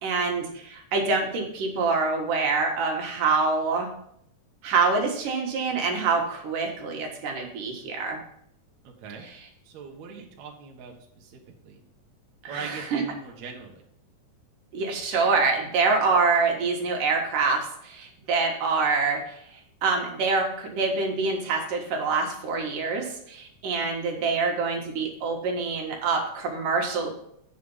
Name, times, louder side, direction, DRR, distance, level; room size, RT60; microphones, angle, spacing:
voice 1, 0.0-3.9 4.6-8.2 12.4-13.0 14.7-27.1, right 4 dB, 80° right, 1 dB, 3.1 m, -26 dB
voice 2, 8.8-9.3 9.6-11.8 12.5-13.8, right 5 dB, 65° right, 1 dB, 2.4 m, -41 dB
8.4 x 6.5 x 5.5 m, 0.71 s
omnidirectional pair, 3.7 m